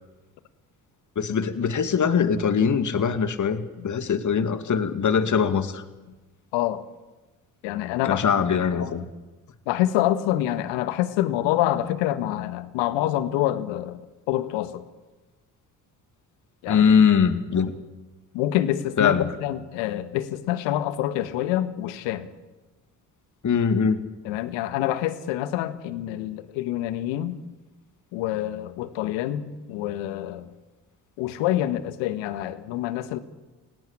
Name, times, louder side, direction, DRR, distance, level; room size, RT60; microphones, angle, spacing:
voice 1, 1.2-5.8 8.0-9.1 16.7-17.7 19.0-19.4 23.4-24.0, left 6 dB, 40° left, 11 dB, 2.2 m, -22 dB
voice 2, 6.5-6.8 7.6-8.2 9.7-14.0 14.3-14.8 16.6-16.9 18.3-22.3 24.2-27.4 28.1-30.5 31.2-33.2, left 13 dB, 75° left, 13 dB, 1.7 m, -26 dB
29.0 x 18.0 x 10.0 m, 1.2 s
hypercardioid pair, 50°, 45 cm